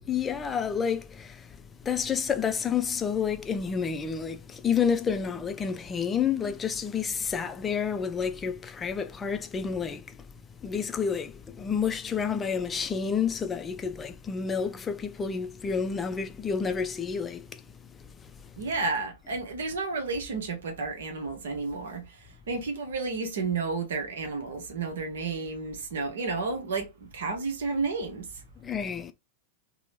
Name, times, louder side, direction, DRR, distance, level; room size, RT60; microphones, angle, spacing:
voice 1, 0.1-1.4 1.9-10.0 10.6-17.5 28.6-29.1, left 6 dB, 20° left, 0.3 m, -29 dB
voice 2, 18.6-28.4, right 4 dB, 60° right, 0.7 m, -32 dB
2.9 x 2.0 x 3.1 m
figure-of-eight pair, 90°, 0 cm